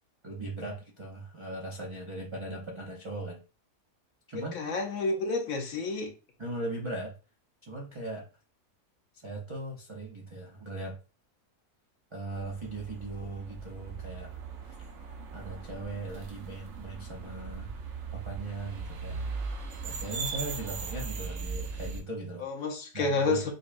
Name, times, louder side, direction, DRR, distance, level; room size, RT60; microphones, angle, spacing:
voice 1, 0.2-3.4 4.3-4.6 6.4-7.1 7.6-8.3 9.2-11.0 12.1-14.7 15.3-17.7 18.1-19.2 19.8-22.5 22.9-23.5, right 2 dB, 45° right, 0.4 m, -39 dB
voice 2, 4.3-6.1 22.4-23.5, left 3 dB, 65° left, 1.1 m, -30 dB
sound 1, 12.3-22.0, right 4 dB, 60° right, 0.9 m, -39 dB
5.1 x 2.2 x 2.5 m
omnidirectional pair, 1.6 m